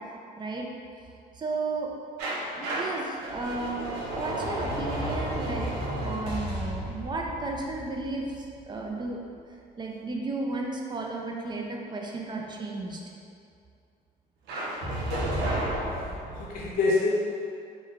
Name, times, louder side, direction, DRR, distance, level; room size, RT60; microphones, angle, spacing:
voice 1, 0.4-0.7 1.3-1.9 2.5-5.7 6.0-9.2 9.8-13.0, right 3 dB, 25° right, 0 dB, 0.4 m, -33 dB
sound 1, 2.2-9.0 14.5-16.7, right 1 dB, 90° right, 0.7 m, -32 dB
voice 2, 14.9-15.9 16.3-17.1, left 3 dB, 60° left, -5 dB, 0.8 m, -29 dB
3.0 x 2.2 x 3.6 m, 2.4 s
cardioid pair, 110°, 17 cm